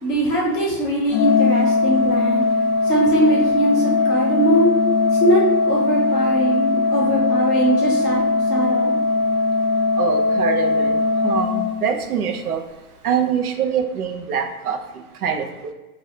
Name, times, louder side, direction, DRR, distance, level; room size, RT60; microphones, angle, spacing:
voice 1, 0.0-2.5 2.8-4.7 5.2-8.2 8.5-8.9, right 1 dB, 5° right, -21 dB, 0.5 m, -21 dB
Organ, 1.1-12.1, left 3 dB, 75° left, 0.6 m, -20 dB
voice 2, 10.0-11.0 11.2-12.6 13.0-14.8 15.2-15.7, right 7 dB, 70° right, 5 dB, 0.8 m, -24 dB
5.1 x 2.6 x 2.7 m, 1.1 s
hypercardioid pair, 180°, 46 cm